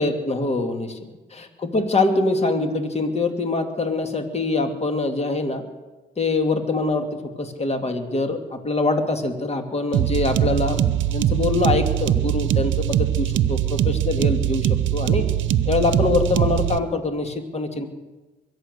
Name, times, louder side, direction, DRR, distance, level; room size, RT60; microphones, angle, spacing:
voice 1, 0.0-1.0 1.3-5.6 6.2-7.1 7.4-10.8 11.1-15.3 15.7-17.9, left 3 dB, 30° left, 6 dB, 2.2 m, -24 dB
sound 1, 9.9-16.8, right 11 dB, 75° right, 0.8 m, -22 dB
23.0 x 9.2 x 6.7 m, 1.2 s
cardioid pair, 90°, 20 cm